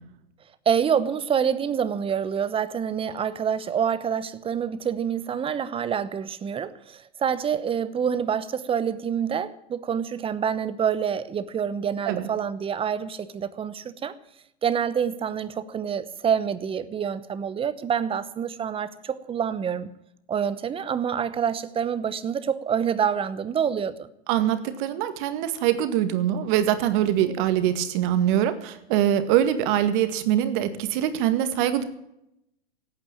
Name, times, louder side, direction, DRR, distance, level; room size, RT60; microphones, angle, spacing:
voice 1, 0.7-14.1 14.6-19.9 20.3-24.1, right 7 dB, 15° right, 15 dB, 0.9 m, -27 dB
voice 2, 24.3-31.8, right 11 dB, 50° right, 11 dB, 2.0 m, -23 dB
17.0 x 9.2 x 9.0 m, 0.81 s
hypercardioid pair, 125°, 33 cm